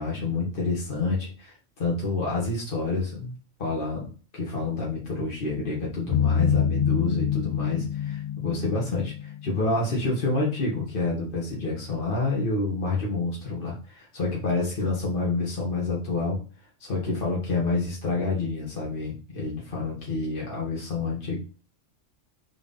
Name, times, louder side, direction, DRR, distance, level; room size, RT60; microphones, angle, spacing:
voice 1, 0.0-3.3 3.6-16.4 16.8-21.4, left 3 dB, 45° left, -4 dB, 2.0 m, -28 dB
sound 1, 6.1-9.8, left 8 dB, 90° left, 0.3 m, -26 dB
4.7 x 3.9 x 5.5 m, 0.36 s
omnidirectional pair, 1.3 m